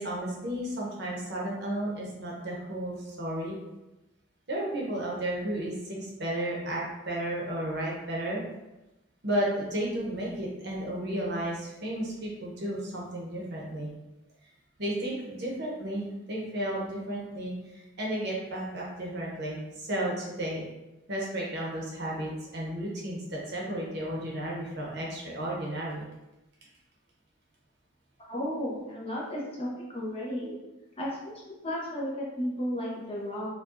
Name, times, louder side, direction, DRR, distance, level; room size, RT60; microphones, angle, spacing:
voice 1, 0.0-3.5 4.5-8.4 9.2-13.9 14.8-20.6 21.1-26.1, right 1 dB, 50° right, -3 dB, 0.8 m, -33 dB
voice 2, 28.3-30.6 30.9-33.5, equal, 25° left, -4 dB, 0.7 m, -34 dB
4.7 x 2.3 x 2.5 m, 1.0 s
head